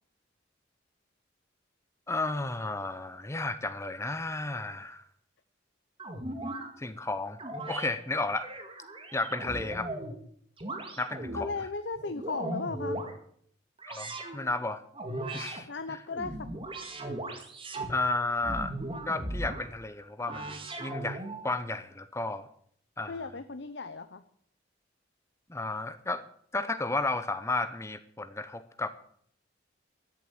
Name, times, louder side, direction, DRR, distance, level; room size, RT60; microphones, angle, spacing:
voice 1, 2.1-5.0 6.8-7.4 7.7-8.5 9.1-9.9 11.0-11.5 13.9-14.8 15.3-16.0 17.9-18.7 19.1-22.5 23.0-23.1 25.5-26.2 26.5-28.9, left 2 dB, 15° left, 12 dB, 0.7 m, -33 dB
sound 1, 6.0-6.7 7.4-7.9 8.3-10.2 10.6-11.5 12.0-13.1 13.8-14.4 14.9-15.6 16.1-17.9 18.4-19.7 20.2-21.4, right 1 dB, 30° right, 2.0 m, -37 dB
voice 2, 11.3-13.0 15.7-16.5 23.0-24.2, left 4 dB, 65° left, 11 dB, 0.8 m, -36 dB
13.5 x 7.5 x 8.9 m, 0.63 s
head